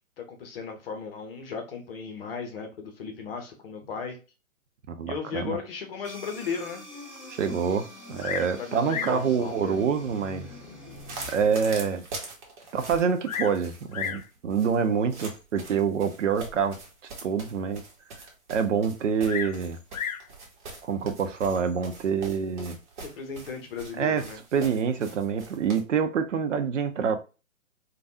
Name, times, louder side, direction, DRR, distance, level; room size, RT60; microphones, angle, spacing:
voice 1, 0.2-4.2 5.1-6.8 8.6-9.8 23.0-24.4, left 5 dB, 45° left, 0.8 m, -36 dB
voice 2, 4.9-5.6 7.3-10.5 11.3-12.1 12.7-16.8 17.2-17.8 18.5-19.8 20.8-22.8 24.0-24.3 24.5-27.2, right 6 dB, 60° right, 0.7 m, -26 dB
sound 1, 6.0-11.3, left 1 dB, 10° left, 1.4 m, -44 dB
Bird vocalization bird call bird song, 8.2-8.6 8.9-9.3 10.1-10.2 10.8-10.9 11.4-11.5 11.7-11.8 12.9-13.6 13.9-14.3 15.3-15.6 19.2-20.3 21.4-21.8, left 8 dB, 80° left, 0.5 m, -34 dB
sound 2, 10.9-25.8, right 3 dB, 35° right, 1.0 m, -43 dB
3.3 x 2.3 x 2.7 m
figure-of-eight pair, 130°, 42 cm